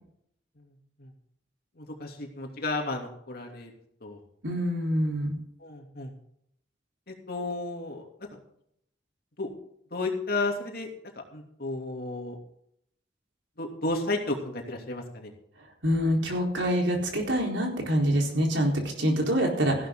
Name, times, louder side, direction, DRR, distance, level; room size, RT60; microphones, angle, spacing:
voice 1, 0.6-1.1 1.8-3.7 4.0-4.2 5.6-6.1 7.1-8.3 9.4-9.5 9.9-10.9 11.3-12.4 13.6-15.3, left 2 dB, 55° left, 2 dB, 2.8 m, -33 dB
voice 2, 4.4-5.4 15.8-19.9, equal, 75° right, 1 dB, 4.2 m, -26 dB
15.0 x 11.5 x 3.8 m, 0.71 s
head